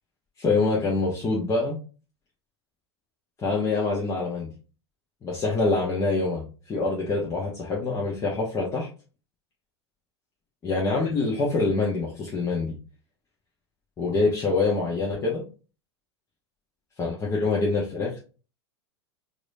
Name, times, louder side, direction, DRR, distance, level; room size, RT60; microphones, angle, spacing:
voice 1, 0.4-1.8 3.4-4.5 5.2-8.9 10.6-12.8 14.0-15.4 17.0-18.2, left 3 dB, 20° left, -4 dB, 1.0 m, -25 dB
4.7 x 2.7 x 2.6 m, 0.35 s
figure-of-eight pair, 90°, 14 cm